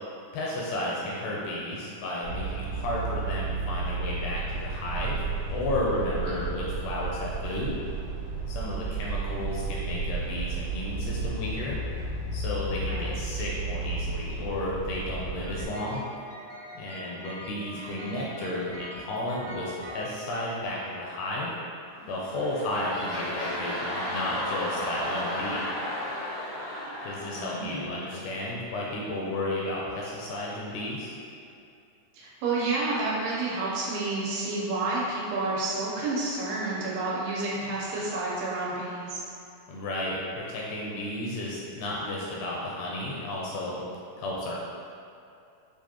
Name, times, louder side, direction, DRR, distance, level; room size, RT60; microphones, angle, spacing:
voice 1, 0.3-5.2 5.5-7.8 8.5-11.8 12.3-16.0 16.7-21.5 22.1-25.6 27.0-31.1 39.7-43.8 44.2-44.6, left 1 dB, 80° left, -4 dB, 1.9 m, -33 dB
sound 1, 2.2-15.7, right 3 dB, 70° right, 2.6 m, -32 dB
voice 2, 6.3-6.6 12.8-13.2 17.8-18.3 27.3-27.8 32.1-39.2, right 3 dB, 85° right, -6 dB, 2.6 m, -30 dB
sound 2, 15.4-21.4, equal, 55° right, 1.6 m, -44 dB
sound 3, 21.9-28.5 29.0-29.1, left 1 dB, 55° left, 1.1 m, -34 dB
6.8 x 2.4 x 2.9 m, 2.6 s
omnidirectional pair, 3.9 m